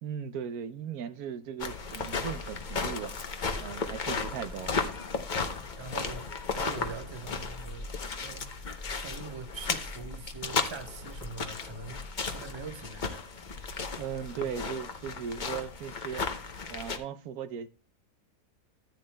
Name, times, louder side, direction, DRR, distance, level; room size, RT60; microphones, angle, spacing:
voice 1, 0.0-3.1 3.6-4.7 14.0-16.3 16.7-17.7, right 8 dB, 70° right, 1.2 m, -37 dB
sound 1, 1.6-17.0, left 4 dB, 40° left, 0.7 m, -35 dB
voice 2, 5.6-7.9 8.2-8.5 8.9-13.2 14.3-14.5, right 4 dB, 25° right, 0.7 m, -43 dB
13.5 x 9.5 x 2.2 m
omnidirectional pair, 1.7 m